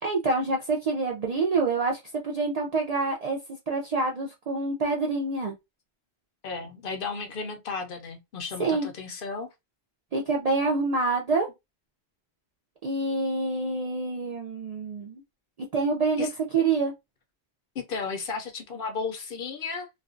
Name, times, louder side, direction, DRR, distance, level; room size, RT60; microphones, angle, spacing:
voice 1, 0.0-3.4 3.7-5.5 8.6-8.9 10.1-11.5 12.8-15.2 15.7-16.3 16.5-16.9, right 3 dB, 55° right, 0.4 m, -26 dB
voice 2, 6.4-9.5 16.2-16.3 17.7-19.9, left 5 dB, 60° left, 0.7 m, -34 dB
2.4 x 2.1 x 2.4 m
omnidirectional pair, 1.1 m